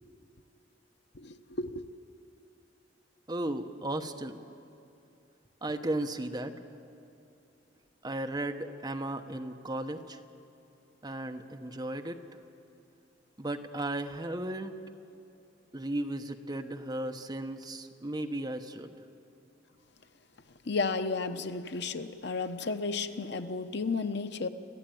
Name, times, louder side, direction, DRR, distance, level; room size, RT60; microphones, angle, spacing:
voice 1, 1.1-1.9 20.6-24.5, left 4 dB, 65° left, 0.9 m, -33 dB
voice 2, 3.3-4.4 5.6-6.5 8.0-10.2 11.0-12.2 13.4-14.7 15.7-19.0, right 1 dB, 25° right, 1.1 m, -35 dB
28.5 x 14.0 x 9.3 m
head